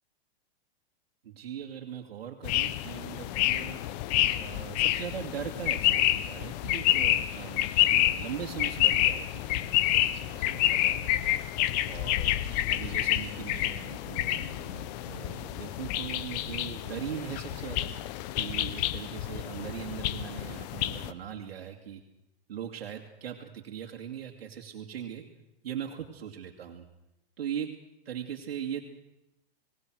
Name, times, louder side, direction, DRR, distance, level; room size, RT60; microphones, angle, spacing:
voice 1, 1.2-3.8 4.4-11.2 11.9-12.3 12.7-17.9 18.3-22.0 22.5-25.2 25.6-26.9 27.4-27.8 28.0-28.8, right 9 dB, 85° right, 2 dB, 2.5 m, -40 dB
sound 1, 2.4-21.1, left 14 dB, 45° left, 1.1 m, -28 dB
28.5 x 18.5 x 6.4 m, 0.90 s
hypercardioid pair, 140°, 30 cm